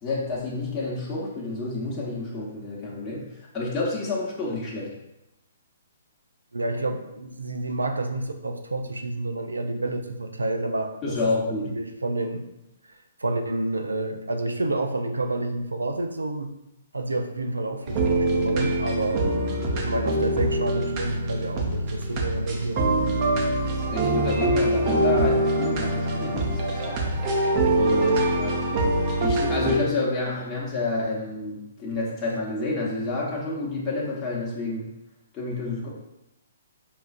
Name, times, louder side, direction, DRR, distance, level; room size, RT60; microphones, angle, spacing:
voice 1, 0.0-4.9 11.0-11.7 23.7-27.2 27.7-28.6 29.2-34.9 35.3-35.9, left 3 dB, 20° left, -6 dB, 0.9 m, -29 dB
voice 2, 6.5-11.2 11.5-12.5 12.9-16.5 16.9-19.2 19.7-23.2 23.5-23.7 27.9-28.2, right 2 dB, 80° right, 6 dB, 0.4 m, -29 dB
sound 1, 17.9-29.8, right 1 dB, 35° right, 0.6 m, -24 dB
5.5 x 2.4 x 2.4 m, 0.88 s
figure-of-eight pair, 125°, 0 cm